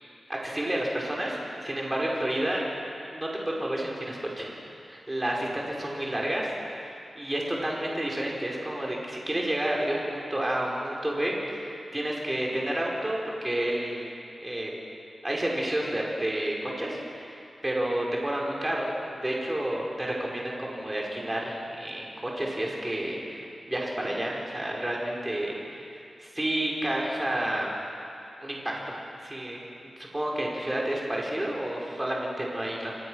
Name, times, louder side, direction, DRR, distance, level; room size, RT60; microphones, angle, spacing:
voice 1, 0.3-2.6 3.1-4.5 4.9-14.1 14.4-14.7 15.2-27.7 28.4-29.0 29.2-32.9, right 1 dB, 15° right, -2 dB, 5.0 m, -30 dB
29.0 x 24.0 x 6.4 m, 2.6 s
wide cardioid pair, 150°, 0 cm